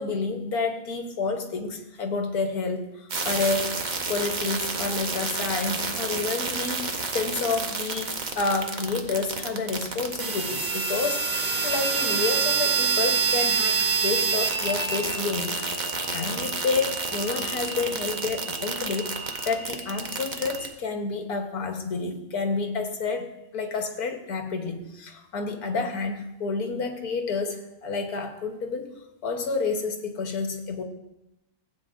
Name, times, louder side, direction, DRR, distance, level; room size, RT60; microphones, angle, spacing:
voice 1, 0.0-19.1 19.4-28.9 29.2-30.8, left 4 dB, 75° left, 5 dB, 1.6 m, -29 dB
sound 1, 3.1-20.7, right 4 dB, 40° right, 0.7 m, -28 dB
16.0 x 8.2 x 2.5 m, 0.90 s
omnidirectional pair, 1.6 m